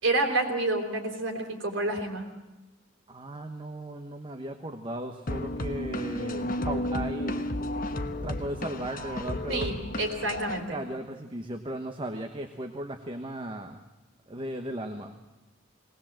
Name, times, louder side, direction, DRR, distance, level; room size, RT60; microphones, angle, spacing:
voice 1, 0.0-2.3 9.5-10.8, right 2 dB, 75° right, 3 dB, 3.8 m, -29 dB
voice 2, 3.1-7.9 8.2-9.7 10.7-13.8 14.3-15.2, right 1 dB, 25° right, 5 dB, 1.1 m, -36 dB
sound 1, 5.3-10.6, left 1 dB, 45° left, 1.2 m, -32 dB
19.5 x 19.5 x 7.5 m, 1.0 s
head